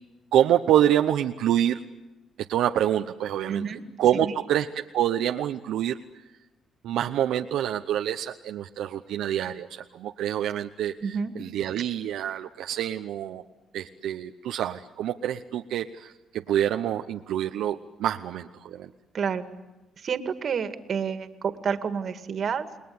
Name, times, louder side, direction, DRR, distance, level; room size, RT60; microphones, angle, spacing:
voice 1, 0.3-1.8 2.5-3.6 4.0-6.0 6.8-13.4 13.7-18.9, right 11 dB, 85° right, 5 dB, 0.9 m, -26 dB
voice 2, 3.5-3.8 4.2-4.3 11.0-11.3 19.1-19.4 20.0-22.7, right 6 dB, 55° right, 10 dB, 2.1 m, -29 dB
30.0 x 20.0 x 9.6 m, 1.1 s
cardioid pair, 90°, 0 cm